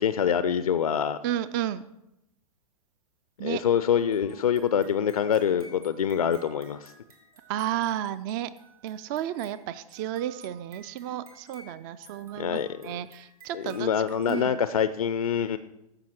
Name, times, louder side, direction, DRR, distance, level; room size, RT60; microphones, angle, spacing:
voice 1, 0.0-1.2 3.4-6.9 12.4-12.9 13.5-15.6, left 8 dB, 75° left, 13 dB, 0.4 m, -25 dB
voice 2, 1.2-1.9 3.4-3.6 7.5-8.5 8.8-13.9 14.3-14.6, right 11 dB, 35° right, 15 dB, 0.4 m, -32 dB
sound 1, 4.0-14.5, right 3 dB, 75° right, 2.7 m, -54 dB
14.5 x 5.7 x 4.4 m, 0.87 s
figure-of-eight pair, 100°, 19 cm